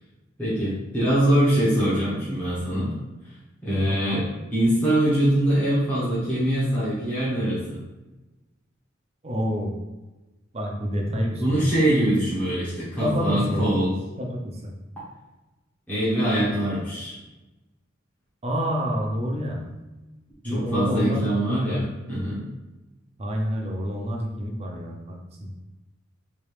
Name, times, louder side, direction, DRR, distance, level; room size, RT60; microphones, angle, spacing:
voice 1, 0.4-2.9 3.6-4.2 4.5-7.8 11.4-14.0 15.9-17.2 20.4-22.4, right 1 dB, 10° left, -11 dB, 0.9 m, -23 dB
voice 2, 3.8-4.2 9.2-9.7 10.5-11.6 13.0-13.7 14.2-14.7 18.4-19.7 20.4-21.8 23.2-25.5, equal, 30° right, 0 dB, 0.6 m, -28 dB
3.1 x 3.0 x 3.2 m, 1.1 s
head